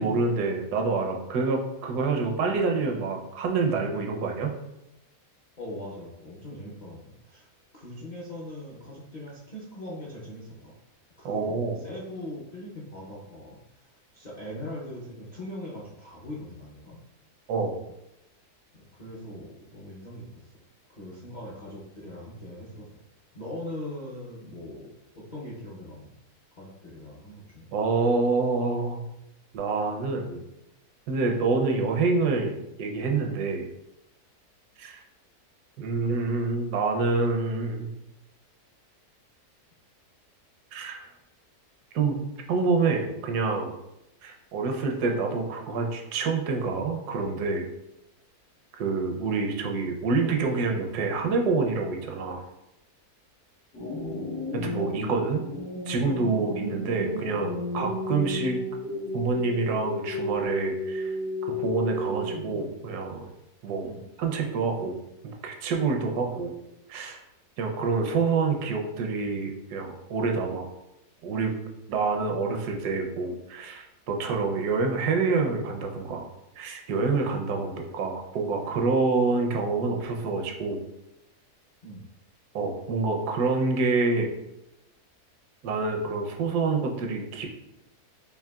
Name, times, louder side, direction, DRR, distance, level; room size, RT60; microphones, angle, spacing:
voice 1, 0.0-4.5 11.2-11.8 17.5-17.8 27.7-29.0 29.5-30.4 31.1-33.7 34.8-35.0 35.8-37.9 40.7-41.1 41.9-42.2 42.5-43.7 44.2-47.7 48.8-52.4 54.5-55.4 55.9-58.6 59.1-61.2 61.5-63.3 63.6-63.9 64.2-65.0 65.2-66.5 66.9-67.2 67.6-70.7 71.2-71.5 71.9-76.3 76.6-80.8 82.5-84.3 85.6-87.5, right 4 dB, 85° right, 3 dB, 1.2 m, -27 dB
voice 2, 5.6-7.5 7.7-10.7 11.2-13.9 14.1-17.0 18.7-20.4 20.9-23.0 23.3-26.1 26.5-27.7 54.1-54.3 56.6-56.7 62.1-62.2 63.8-64.0 81.8-82.0, left 1 dB, 50° left, -7 dB, 0.5 m, -41 dB
sound 1, 53.7-62.7, left 1 dB, 80° left, 2.0 m, -33 dB
4.7 x 2.7 x 2.3 m, 0.88 s
omnidirectional pair, 1.7 m